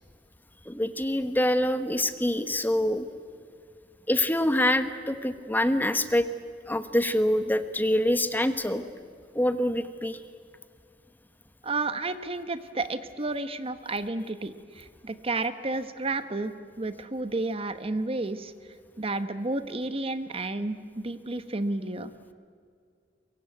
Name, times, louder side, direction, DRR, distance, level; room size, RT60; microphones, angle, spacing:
voice 1, 0.7-3.1 4.1-6.3 6.7-8.8 9.3-10.2, left 1 dB, 10° left, 10 dB, 1.2 m, -25 dB
voice 2, 11.6-18.5 19.0-20.8 21.0-22.1, right 2 dB, 35° right, 11 dB, 1.1 m, -31 dB
23.0 x 23.0 x 9.3 m, 2.2 s
head